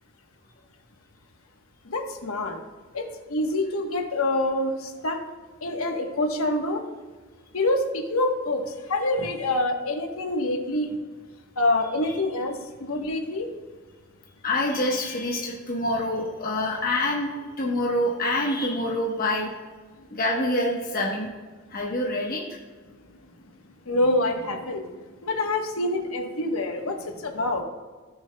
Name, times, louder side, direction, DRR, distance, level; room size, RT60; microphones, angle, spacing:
voice 1, 1.8-2.6 2.9-5.2 5.6-6.8 7.5-11.0 11.6-13.5 23.9-24.8 25.2-27.6, left 2 dB, 80° left, 3 dB, 1.2 m, -26 dB
voice 2, 14.4-17.3 17.6-19.5 20.1-21.3 21.7-22.5, left 1 dB, 45° left, -2 dB, 1.1 m, -26 dB
17.5 x 6.5 x 2.2 m, 1.4 s
head